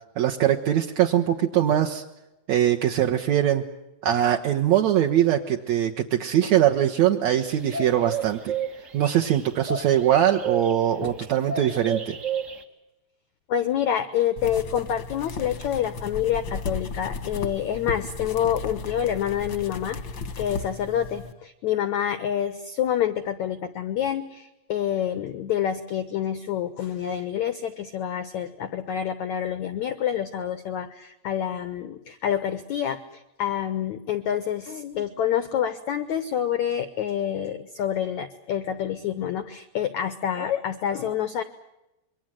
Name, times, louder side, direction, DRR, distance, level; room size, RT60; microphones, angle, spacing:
voice 1, 0.2-2.0 2.5-3.6 4.0-8.6 8.9-12.2, right 11 dB, 70° right, 3 dB, 1.7 m, -22 dB
sound 1, 7.4-11.1 11.5-12.6, right 6 dB, 55° right, 0.8 m, -31 dB
voice 2, 13.5-20.0 20.4-41.4, left 9 dB, 80° left, 12 dB, 1.6 m, -27 dB
sound 2, 14.4-21.3, left 4 dB, 60° left, 1.2 m, -35 dB
27.0 x 23.0 x 7.7 m, 0.94 s
omnidirectional pair, 4.9 m